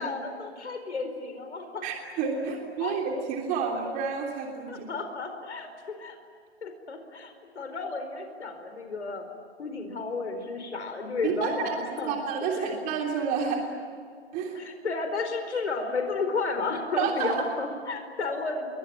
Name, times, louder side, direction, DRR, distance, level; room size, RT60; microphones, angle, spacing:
voice 1, 0.0-1.9 2.5-3.0 4.7-5.7 6.0-6.2 6.6-9.3 9.6-12.2 12.6-12.7 14.5-18.7, left 3 dB, 75° left, 5 dB, 4.7 m, -32 dB
voice 2, 1.8-4.9 11.2-11.7 12.0-13.7 14.3-14.6 17.0-17.5, right 5 dB, 25° right, 1 dB, 3.3 m, -29 dB
28.5 x 23.0 x 8.9 m, 2.2 s
hypercardioid pair, 135°, 34 cm